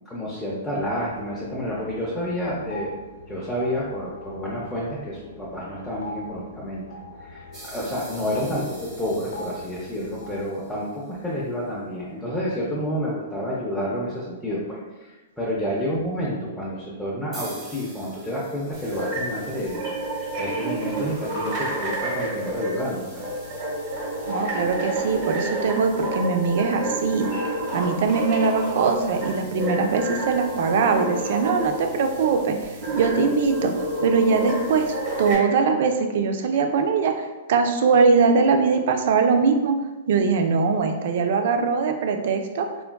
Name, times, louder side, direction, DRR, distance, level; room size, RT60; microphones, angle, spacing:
voice 1, 0.1-2.9 3.3-6.8 7.2-19.8 20.4-23.2, equal, 5° left, -8 dB, 0.6 m, -29 dB
sound 1, 0.8-10.5, left 1 dB, 80° left, 0.5 m, -42 dB
sound 2, 7.5-11.0 17.3-19.6, right 1 dB, 20° right, 0.9 m, -44 dB
sound 3, 18.7-35.3, right 1 dB, 40° right, 1.2 m, -29 dB
voice 2, 24.3-27.3 27.7-39.7 40.1-42.7, right 5 dB, 65° right, 6 dB, 0.4 m, -22 dB
3.7 x 2.2 x 2.2 m, 1.2 s
hypercardioid pair, 130°, 0 cm